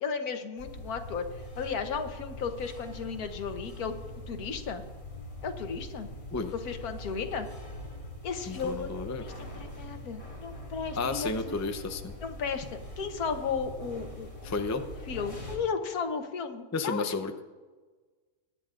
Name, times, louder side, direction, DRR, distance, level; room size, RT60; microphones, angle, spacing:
voice 1, 0.0-1.2 1.6-3.9 4.3-4.8 5.4-6.1 6.5-7.5 8.2-11.6 12.2-14.3 15.1-17.1, left 5 dB, 85° left, 7 dB, 1.5 m, -34 dB
sound 1, 0.6-15.6, left 1 dB, 65° left, 3.8 m, -43 dB
voice 2, 8.5-9.2 11.0-12.1 14.4-14.8 16.7-17.4, left 3 dB, 20° left, 7 dB, 0.4 m, -32 dB
22.5 x 10.5 x 2.5 m, 1.3 s
omnidirectional pair, 1.5 m